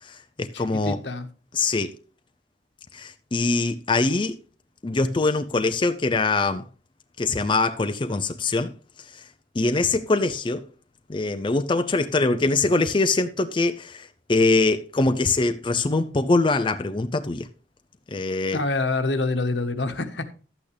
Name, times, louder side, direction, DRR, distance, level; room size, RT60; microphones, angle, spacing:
voice 1, 0.0-1.0 1.5-1.9 2.9-4.4 4.8-6.6 7.2-8.7 9.1-9.2 9.6-10.6 11.1-17.5 18.1-18.6, left 3 dB, 30° left, 0.5 m, -23 dB
voice 2, 0.5-1.3 18.5-20.3, left 3 dB, 75° left, 1.3 m, -26 dB
12.0 x 8.6 x 3.4 m
head